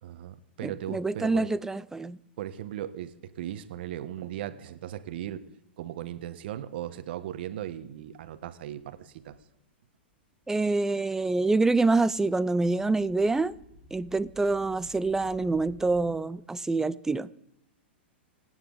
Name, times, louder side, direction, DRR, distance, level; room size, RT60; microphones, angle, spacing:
voice 1, 0.0-1.5 2.4-5.5 5.8-9.4, right 11 dB, 65° right, 1.2 m, -37 dB
voice 2, 0.6-2.2 10.5-13.5 13.9-17.3, right 3 dB, 10° right, 0.5 m, -26 dB
sound 1, 8.4-9.4 10.0-10.1 10.4-16.0, left 1 dB, 65° left, 4.8 m, -55 dB
27.5 x 9.3 x 4.0 m
hypercardioid pair, 115°, 6 cm